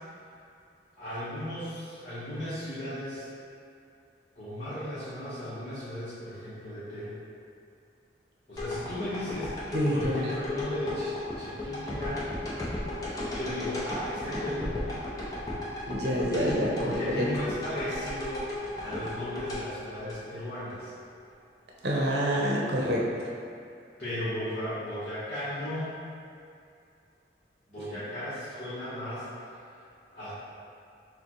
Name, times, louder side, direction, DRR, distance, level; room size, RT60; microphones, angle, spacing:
voice 1, 1.0-3.3 4.3-7.2 8.5-12.2 13.3-14.7 16.8-20.9 21.9-22.1 24.0-25.9 27.7-29.3 30.1-30.3, equal, 40° left, -15 dB, 1.1 m, -36 dB
sound 1, 8.6-20.7 21.2-21.3, left 2 dB, 20° left, 0.7 m, -35 dB
voice 2, 9.7-10.3 15.9-17.3 21.8-23.0, equal, 65° right, -4 dB, 0.7 m, -27 dB
6.6 x 2.2 x 3.0 m, 2.5 s
head